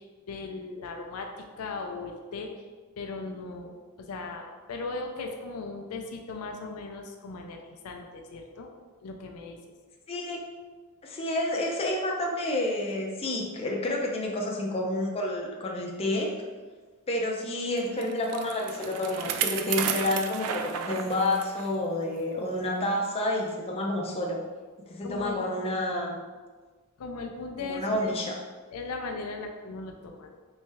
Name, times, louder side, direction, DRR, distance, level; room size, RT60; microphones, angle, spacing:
voice 1, 0.0-2.6 3.0-3.7 4.1-8.7 9.0-9.6 25.0-25.4 27.0-28.2 28.7-30.4, left 3 dB, 85° left, 3 dB, 0.4 m, -38 dB
voice 2, 10.1-10.4 11.0-16.3 17.1-24.4 24.9-26.2 27.7-28.4, left 1 dB, 25° left, -1 dB, 0.5 m, -29 dB
Bicycle, 17.8-21.7 22.1-22.2 23.0-23.1, right 8 dB, 85° right, 0.3 m, -33 dB
3.4 x 3.1 x 3.2 m, 1.4 s
head